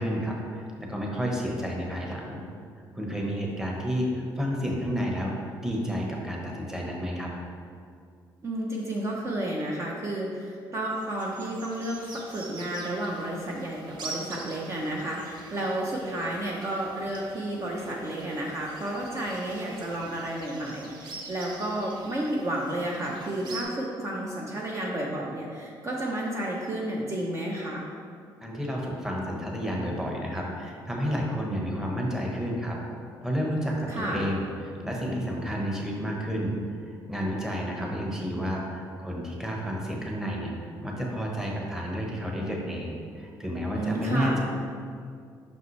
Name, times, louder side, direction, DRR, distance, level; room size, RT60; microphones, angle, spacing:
voice 1, 0.0-2.4 2.9-5.3 5.6-7.3 28.4-32.8 33.2-44.4, equal, 5° right, -2 dB, 1.1 m, -31 dB
voice 2, 8.4-27.9 33.9-34.3 43.7-44.4, right 1 dB, 35° right, -3 dB, 0.7 m, -31 dB
sound 1, 10.9-23.6, right 3 dB, 60° right, 0.9 m, -45 dB
5.5 x 5.5 x 3.2 m, 2.3 s
cardioid pair, 95°, 8 cm